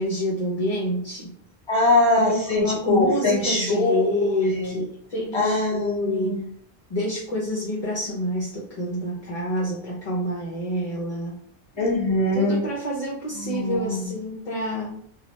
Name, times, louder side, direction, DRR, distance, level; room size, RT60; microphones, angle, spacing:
voice 1, 0.0-1.3 2.2-6.4 6.9-11.4 12.3-15.0, equal, 45° left, -4 dB, 0.6 m, -27 dB
voice 2, 1.7-4.0 4.5-4.8 5.3-6.5 11.8-12.6 13.4-14.1, left 2 dB, 25° left, -3 dB, 1.2 m, -22 dB
3.0 x 2.2 x 3.1 m, 0.63 s
omnidirectional pair, 1.1 m